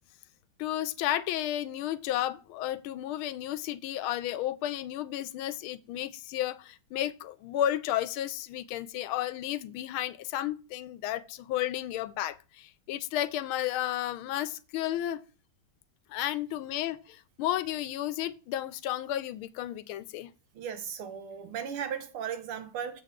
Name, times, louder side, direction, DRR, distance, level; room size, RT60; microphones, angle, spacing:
voice 1, 0.6-15.2 16.1-20.3, left 12 dB, 80° left, 1.4 m, -32 dB
voice 2, 20.5-23.0, right 8 dB, 85° right, 2.0 m, -36 dB
7.5 x 6.5 x 3.6 m
omnidirectional pair, 2.3 m